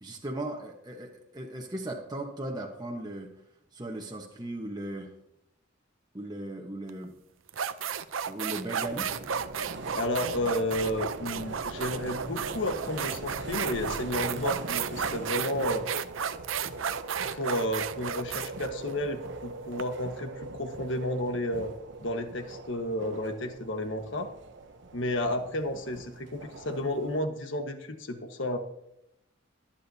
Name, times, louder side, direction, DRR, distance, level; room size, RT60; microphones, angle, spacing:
voice 1, 0.0-3.3 3.7-5.1 6.1-7.1 8.3-9.1, right 1 dB, 20° right, 0 dB, 1.2 m, -37 dB
sound 1, 6.9-7.0 7.5-19.8, right 7 dB, 85° right, 0.6 m, -33 dB
sound 2, 8.8-27.2, right 2 dB, 60° right, 1.0 m, -41 dB
voice 2, 9.9-15.9 17.3-24.3 24.9-28.6, left 1 dB, 70° left, 6 dB, 1.4 m, -32 dB
22.5 x 8.8 x 2.8 m, 0.81 s
head